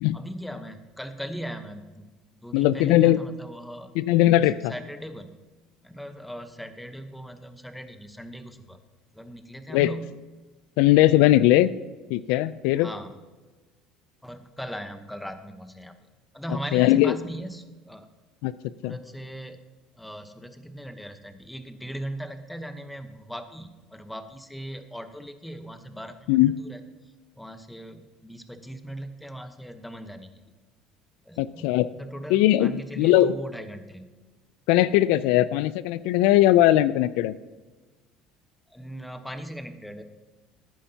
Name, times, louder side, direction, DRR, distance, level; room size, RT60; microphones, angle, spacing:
voice 1, 0.1-2.1 2.4-3.9 4.7-5.4 5.8-8.8 9.1-10.1 12.8-13.1 14.2-16.0 16.3-18.1 18.8-19.6 20.0-26.8 27.4-30.5 31.2-34.1 38.7-40.0, equal, 5° left, 9 dB, 1.0 m, -39 dB
voice 2, 2.5-3.2 4.0-4.7 9.7-9.9 10.8-11.7 12.1-12.9 16.7-17.2 18.4-18.5 18.8-18.9 26.3-26.5 31.4-31.9 32.3-33.3 34.7-37.3, left 14 dB, 80° left, 16 dB, 0.3 m, -19 dB
14.5 x 10.0 x 2.8 m, 1.3 s
supercardioid pair, 100°, 0 cm